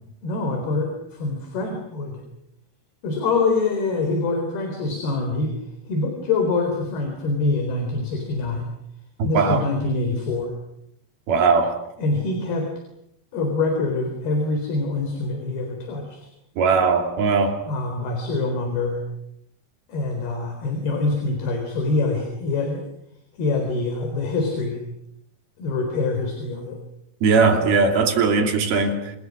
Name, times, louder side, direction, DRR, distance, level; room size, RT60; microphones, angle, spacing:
voice 1, 0.2-2.2 3.0-5.6 5.9-8.7 9.2-10.5 12.0-12.7 13.3-16.3 17.7-19.0 19.9-22.8 23.4-24.8 25.6-26.8, left 3 dB, 60° left, 4 dB, 5.8 m, -25 dB
voice 2, 11.3-11.8 16.6-17.6 27.2-29.1, right 4 dB, 60° right, 4 dB, 4.7 m, -19 dB
28.0 x 27.0 x 6.4 m, 0.76 s
omnidirectional pair, 5.1 m